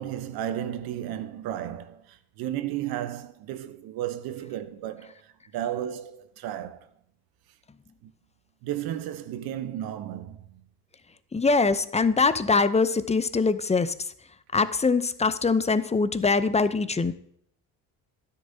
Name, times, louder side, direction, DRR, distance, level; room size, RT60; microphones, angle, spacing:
voice 1, 0.0-6.9 8.0-8.1 8.6-10.6, right 11 dB, 75° right, 1.0 m, -34 dB
voice 2, 11.3-13.9 14.5-17.1, left 4 dB, 20° left, 0.6 m, -23 dB
12.5 x 10.0 x 2.8 m
supercardioid pair, 70°, 37 cm